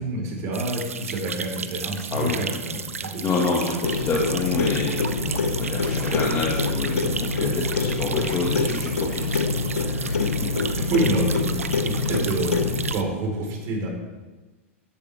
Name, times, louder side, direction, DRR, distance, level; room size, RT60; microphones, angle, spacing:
voice 1, 0.0-3.4 5.3-5.4 10.7-13.9, right 2 dB, 45° right, -1 dB, 4.5 m, -28 dB
sound 1, 0.5-13.0, right 6 dB, 90° right, 0.7 m, -34 dB
voice 2, 3.2-4.9 5.6-9.4 9.9-10.1, left 3 dB, 30° left, -3 dB, 2.0 m, -27 dB
Clock, 3.8-12.9, left 4 dB, 90° left, 1.0 m, -25 dB
14.0 x 10.5 x 3.6 m, 1.2 s
hypercardioid pair, 100°, 7 cm